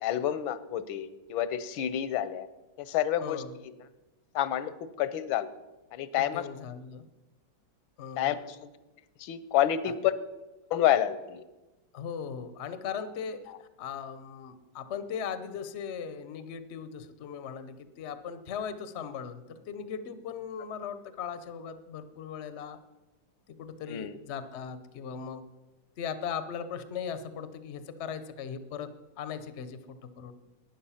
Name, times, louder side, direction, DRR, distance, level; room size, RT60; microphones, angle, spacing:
voice 1, 0.0-2.5 2.8-3.4 4.3-5.5 5.9-6.4 8.2-8.7 9.2-10.1 10.7-11.4 13.5-13.6 23.9-24.2, left 11 dB, 85° left, 14 dB, 1.5 m, -29 dB
voice 2, 3.2-3.5 6.3-7.1 8.0-8.4 9.8-9.9 11.9-22.8 23.6-25.4 26.0-28.9 29.2-30.3, left 7 dB, 60° left, 12 dB, 0.7 m, -38 dB
11.5 x 9.3 x 5.6 m, 1.1 s
omnidirectional pair, 2.1 m